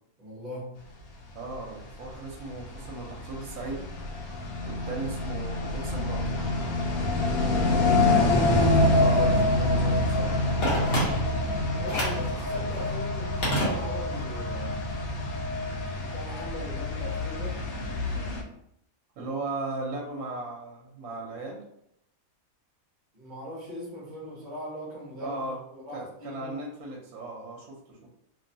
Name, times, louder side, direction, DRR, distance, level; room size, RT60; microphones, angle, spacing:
voice 1, 0.2-0.9 7.6-8.4 11.7-15.0 15.9-17.7 23.1-26.6, left 1 dB, 40° right, -3 dB, 0.8 m, -39 dB
voice 2, 1.3-3.9 4.6-6.3 9.0-10.4 19.2-21.6 25.2-25.6 25.9-28.0, right 3 dB, 75° right, -1 dB, 1.0 m, -36 dB
sound 1, 1.8-18.4, left 2 dB, 80° left, 1.0 m, -26 dB
Telephone, 10.6-11.5 11.9-12.3 13.4-14.3 14.6-14.7, equal, 55° left, 1.1 m, -28 dB
2.8 x 2.2 x 2.6 m, 0.75 s
omnidirectional pair, 1.5 m